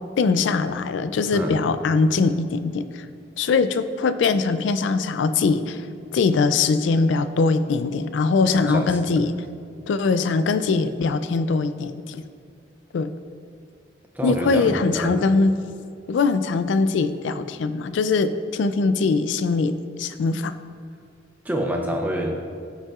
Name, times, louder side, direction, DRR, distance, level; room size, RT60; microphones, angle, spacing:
voice 1, 0.2-2.9 3.4-5.8 6.1-9.4 9.9-12.2 12.9-13.1 14.2-15.5 16.1-20.6, left 4 dB, 90° left, 12 dB, 0.3 m, -21 dB
voice 2, 8.6-9.2 14.1-15.2 21.4-22.4, equal, 10° right, 2 dB, 0.6 m, -27 dB
13.0 x 5.5 x 2.4 m, 2.3 s
head